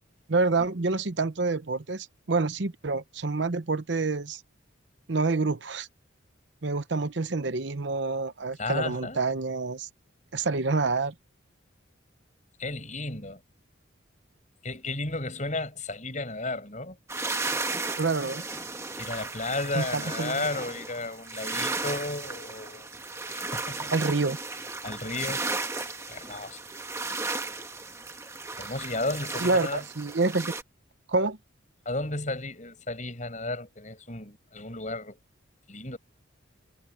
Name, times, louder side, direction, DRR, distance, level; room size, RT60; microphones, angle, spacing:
voice 1, 0.3-4.4 5.1-5.9 6.6-9.9 10.3-11.1 18.0-18.4 19.7-20.4 23.9-24.4 28.6-28.7 29.4-30.5 31.1-31.4, right 3 dB, 60° right, 0.9 m, -27 dB
voice 2, 8.6-9.2 12.6-13.4 14.6-17.0 19.0-22.9 23.3-23.9 24.8-25.4 26.1-26.6 28.6-29.8 31.8-35.2 35.7-36.0, left 2 dB, 35° left, 8.0 m, -33 dB
sound 1, 17.1-30.6, right 3 dB, 15° right, 1.2 m, -35 dB
head